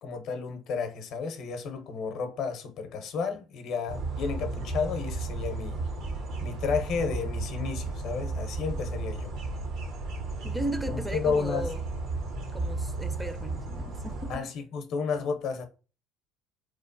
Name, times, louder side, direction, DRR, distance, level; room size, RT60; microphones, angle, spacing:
voice 1, 0.0-5.8 6.4-9.3 10.9-11.7 14.3-15.7, left 5 dB, 60° left, 0.6 m, -32 dB
sound 1, 3.9-14.4, right 3 dB, 70° right, 0.6 m, -34 dB
voice 2, 10.4-11.8 12.5-14.5, right 1 dB, 10° right, 0.4 m, -36 dB
2.9 x 2.0 x 2.5 m
hypercardioid pair, 70°, 0 cm